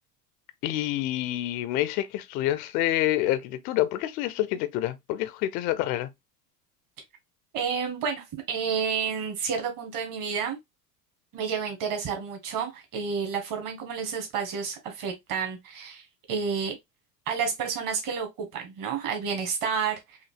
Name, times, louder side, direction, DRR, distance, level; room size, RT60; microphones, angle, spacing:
voice 1, 0.6-6.1, left 14 dB, 20° left, 0.3 m, -27 dB
voice 2, 7.5-10.6 11.3-16.8 17.3-20.2, right 6 dB, 40° right, 1.7 m, -30 dB
5.7 x 2.7 x 2.4 m
figure-of-eight pair, 80°, 49 cm